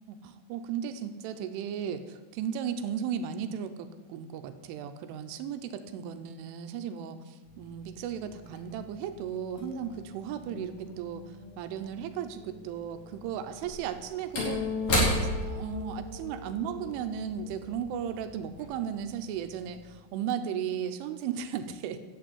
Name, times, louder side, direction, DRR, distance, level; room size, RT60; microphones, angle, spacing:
voice 1, 0.1-14.7 15.2-22.0, right 8 dB, 80° right, 9 dB, 3.1 m, -35 dB
sound 1, 7.5-20.0, left 5 dB, 70° left, 2.4 m, -42 dB
Slam / Wood, 11.9-12.0 13.4-18.1 18.5-18.6, equal, 40° left, 5.0 m, -32 dB
11.5 x 8.6 x 8.6 m, 1.3 s
omnidirectional pair, 5.9 m